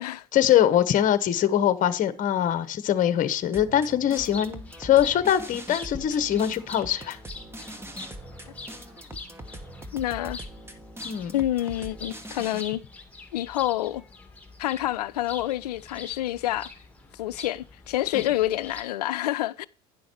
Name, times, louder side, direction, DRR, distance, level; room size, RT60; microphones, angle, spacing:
voice 1, 0.3-7.2 11.0-11.3 18.1-18.3, left 10 dB, 40° left, 1.0 m, -23 dB
sound 1, 3.5-12.6, right 1 dB, 10° right, 1.4 m, -42 dB
sound 2, 4.2-18.8, left 3 dB, 5° left, 2.3 m, -44 dB
voice 2, 9.9-10.4 11.3-12.8 13.3-14.0 14.6-16.7 17.2-19.7, left 14 dB, 85° left, 0.5 m, -28 dB
9.9 x 6.3 x 4.5 m
hypercardioid pair, 80°, 20 cm